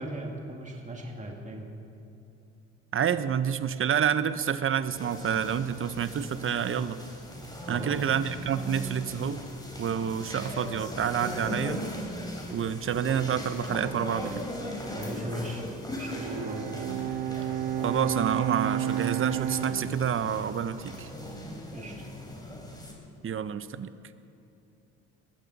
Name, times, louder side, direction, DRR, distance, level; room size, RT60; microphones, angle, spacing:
voice 1, 0.0-1.7 7.7-8.1 14.9-15.6 15.9-16.7 21.7-21.9, right 1 dB, 25° right, 1 dB, 2.2 m, -37 dB
voice 2, 2.9-7.0 7.7-9.4 9.8-11.8 12.5-14.4 17.8-21.1 23.2-23.9, right 8 dB, 40° right, 13 dB, 0.8 m, -28 dB
sound 1, 4.9-22.9, left 1 dB, 10° left, 3.7 m, -39 dB
Bowed string instrument, 15.9-21.4, right 10 dB, 85° right, 0.8 m, -32 dB
21.0 x 15.0 x 4.1 m, 2.8 s
supercardioid pair, 75°, 32 cm